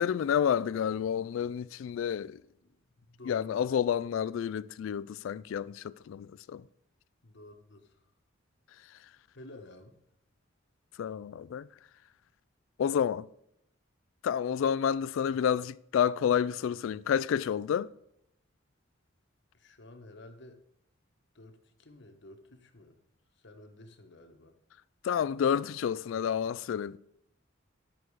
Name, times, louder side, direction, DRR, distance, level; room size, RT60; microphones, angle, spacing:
voice 1, 0.0-2.4 3.3-6.6 11.0-11.7 12.8-13.3 14.2-17.9 25.0-27.0, left 8 dB, 80° left, 0.3 m, -29 dB
voice 2, 2.6-3.7 7.2-8.0 9.3-10.0 19.5-20.6 21.3-23.0 23.3-24.6 26.1-26.2, left 1 dB, 60° left, 1.2 m, -52 dB
10.5 x 6.2 x 4.7 m
head